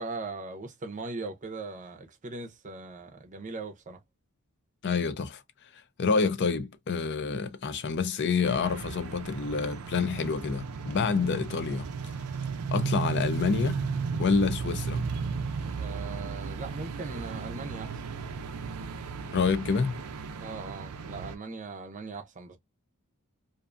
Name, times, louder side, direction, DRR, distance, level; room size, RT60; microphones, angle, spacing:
voice 1, 0.0-4.0 15.7-17.9 20.3-22.6, right 3 dB, 35° right, 0.6 m, -39 dB
voice 2, 4.8-5.4 6.0-11.9 12.7-13.9 14.2-15.0 19.3-20.0, left 5 dB, 50° left, 0.4 m, -27 dB
sound 1, 8.4-21.4, right 5 dB, 80° right, 0.5 m, -35 dB
2.5 x 2.3 x 2.4 m
head